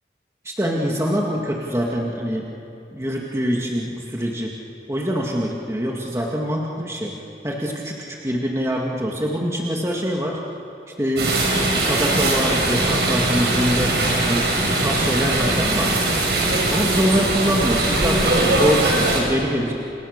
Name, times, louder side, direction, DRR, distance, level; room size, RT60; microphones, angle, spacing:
voice 1, 0.4-2.5 2.9-4.5 4.9-7.2 7.4-10.4 11.0-11.5 11.8-16.0 16.7-19.7, equal, 15° right, -2 dB, 2.1 m, -24 dB
sound 1, 11.2-19.2, right 2 dB, 70° right, 6.5 m, -20 dB
29.5 x 29.0 x 6.7 m, 2.8 s
head